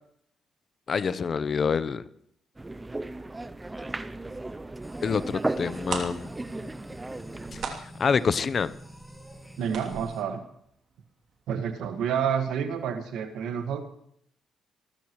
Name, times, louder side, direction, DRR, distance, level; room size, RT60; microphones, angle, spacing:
voice 1, 0.9-2.0 5.0-6.3 8.0-8.7, left 5 dB, 45° left, 14 dB, 0.8 m, -26 dB
sound 1, 2.6-7.7, right 2 dB, 15° right, 0.6 m, -35 dB
sound 2, 4.8-10.2, equal, ahead, 2.0 m, -47 dB
sound 3, 5.8-11.4 11.7-11.8 12.2-12.4 12.7-12.8, right 5 dB, 60° right, 2.9 m, -39 dB
voice 2, 9.6-10.4 11.5-13.8, right 7 dB, 85° right, 6 dB, 1.7 m, -29 dB
25.5 x 13.5 x 3.2 m, 0.70 s
cardioid pair, 90°, 0 cm